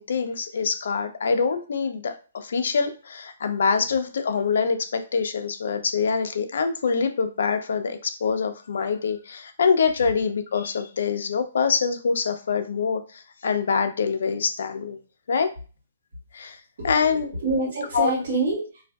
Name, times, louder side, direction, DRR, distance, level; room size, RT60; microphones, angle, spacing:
voice 1, 0.0-15.0 15.3-15.5 16.3-16.6 16.8-17.3 17.9-18.2, left 5 dB, 70° left, 8 dB, 0.4 m, -25 dB
voice 2, 16.8-18.8, right 3 dB, 70° right, -8 dB, 1.4 m, -27 dB
2.5 x 2.4 x 2.2 m, 0.37 s
hypercardioid pair, 150°, 0 cm